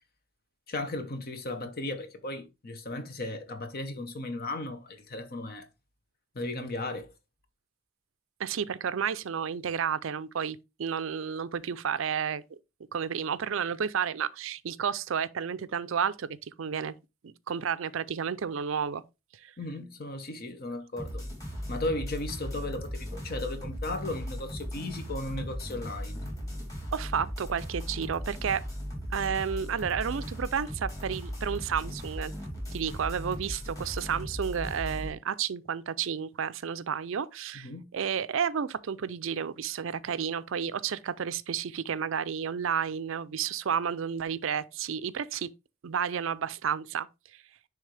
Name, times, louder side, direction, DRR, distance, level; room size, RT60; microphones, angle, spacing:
voice 1, 0.7-5.7 6.3-7.1 19.6-21.2 21.7-26.3 37.5-37.8, left 2 dB, 45° left, 1.1 m, -36 dB
voice 2, 8.4-12.4 12.9-16.9 17.2-19.0 19.3-19.5 26.9-28.6 29.1-32.3 32.7-45.5 45.8-47.1 47.3-47.4, right 7 dB, 65° right, 0.4 m, -31 dB
sound 1, 21.0-35.1, equal, 15° left, 3.3 m, -37 dB
10.0 x 3.4 x 3.3 m
head